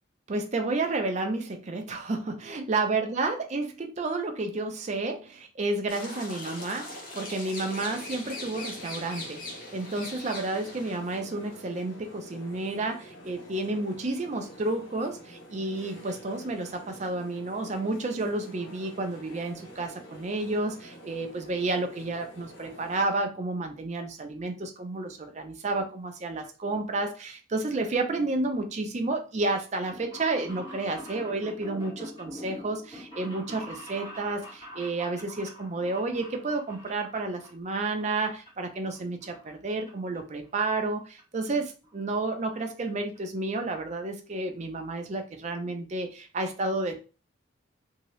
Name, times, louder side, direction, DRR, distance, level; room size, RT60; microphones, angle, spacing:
voice 1, 0.3-47.0, right 2 dB, 35° right, 5 dB, 0.5 m, -31 dB
sound 1, 5.9-11.0, left 2 dB, 45° left, 0.9 m, -40 dB
sound 2, 7.6-23.0, equal, 65° left, 1.2 m, -48 dB
sound 3, 29.8-37.5 37.8-38.5 38.8-39.9 40.1-40.2 41.2-41.3 41.5-41.6 41.8-41.9 42.2-42.5 42.9-43.0 43.1-43.2, equal, 20° left, 1.5 m, -45 dB
2.8 x 2.8 x 3.0 m, 0.34 s
head